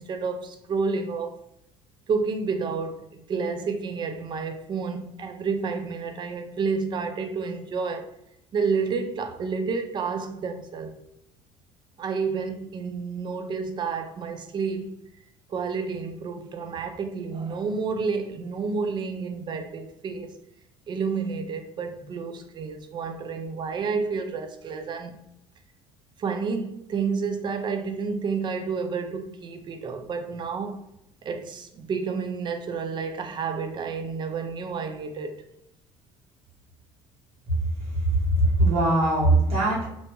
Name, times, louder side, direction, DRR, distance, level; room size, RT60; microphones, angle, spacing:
voice 1, 0.0-1.4 2.1-8.1 8.5-11.0 12.0-15.0 15.5-20.3 20.9-25.2 26.2-30.8 31.2-35.4, right 5 dB, 40° right, 0.5 m, -30 dB
voice 2, 38.3-39.9, right 1 dB, 55° right, 1.3 m, -21 dB
2.6 x 2.2 x 2.9 m
supercardioid pair, 80°, 12 cm